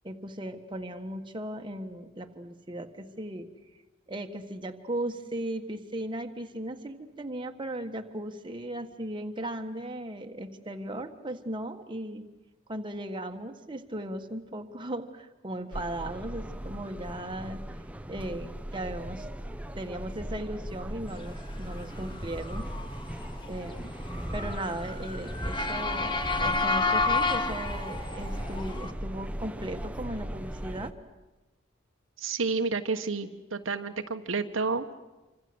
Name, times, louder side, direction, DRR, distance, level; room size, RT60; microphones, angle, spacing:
voice 1, 0.0-3.5 4.1-12.3 12.7-17.6 18.1-19.3 19.7-22.7 23.5-23.9 24.3-30.9, right 1 dB, 25° right, 4 dB, 1.6 m, -37 dB
sound 1, 15.7-30.9, equal, 5° right, 0.9 m, -38 dB
Motor vehicle (road) / Siren, 21.6-28.9, left 3 dB, 25° left, 1.9 m, -31 dB
voice 2, 32.2-34.9, right 4 dB, 75° right, 6 dB, 1.4 m, -30 dB
27.0 x 25.5 x 7.9 m, 1.1 s
head